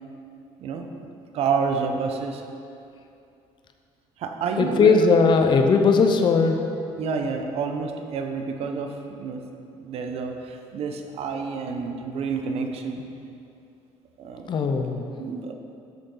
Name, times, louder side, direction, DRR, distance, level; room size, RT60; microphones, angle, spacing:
voice 1, 0.6-1.1 1.3-2.4 4.2-5.1 7.0-9.4 9.7-13.0 14.2-14.7 15.2-15.5, right 5 dB, 60° right, 5 dB, 1.0 m, -29 dB
voice 2, 4.6-6.6 14.5-15.1, left 4 dB, 40° left, 5 dB, 0.8 m, -18 dB
13.0 x 6.5 x 4.0 m, 2.6 s
cardioid pair, 100°, 12 cm